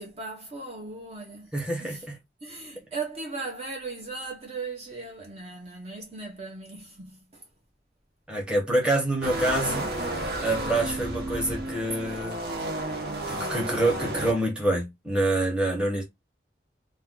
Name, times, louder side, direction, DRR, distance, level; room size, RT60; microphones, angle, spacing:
voice 1, 0.0-2.1 2.4-7.4, right 3 dB, 35° right, 0.5 m, -38 dB
voice 2, 1.5-2.2 8.3-9.9 10.4-12.4 13.3-16.0, right 1 dB, 5° right, 0.8 m, -26 dB
sound 1, 9.2-14.3, right 1 dB, 65° right, 0.8 m, -32 dB
2.5 x 2.2 x 3.4 m
head